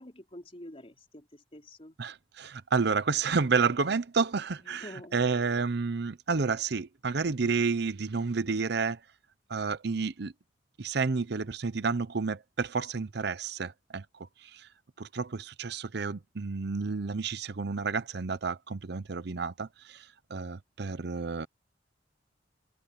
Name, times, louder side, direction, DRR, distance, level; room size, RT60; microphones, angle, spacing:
voice 1, 0.0-2.0 4.6-5.1, left 1 dB, 35° left, 4.1 m, -47 dB
voice 2, 2.0-9.0 9.5-10.3 10.8-14.0 14.4-14.7 15.0-21.5, right 4 dB, 65° right, 0.7 m, -30 dB
head